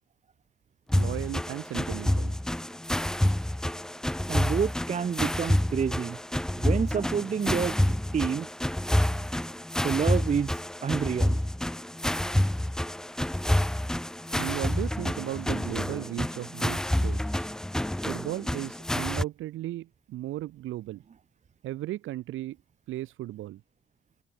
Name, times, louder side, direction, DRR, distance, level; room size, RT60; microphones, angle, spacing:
sound 1, 0.9-19.2, left 1 dB, 5° left, 0.4 m, -28 dB
voice 1, 0.9-2.4 14.4-17.5 18.0-21.0 21.6-22.6 22.9-23.6, right 15 dB, 85° right, 2.0 m, -36 dB
voice 2, 4.3-6.2 6.6-8.5 9.8-11.4, right 7 dB, 35° right, 0.8 m, -29 dB
cardioid pair, 90°, 20 cm